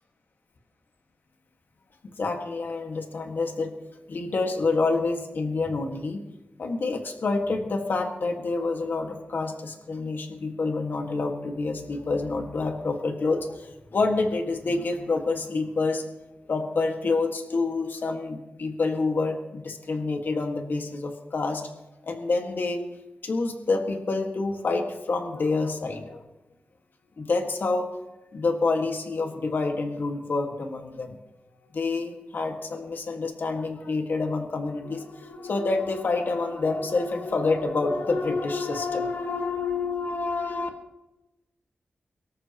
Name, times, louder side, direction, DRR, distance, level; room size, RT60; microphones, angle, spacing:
voice 1, 2.0-3.7 4.1-6.2 6.6-16.0 16.5-21.6 22.0-22.8 23.2-26.2 27.2-27.9 28.3-31.2 31.7-40.7, left 3 dB, 60° left, 3 dB, 1.8 m, -27 dB
23.5 x 13.5 x 3.0 m, 0.99 s
wide cardioid pair, 95°, 4 cm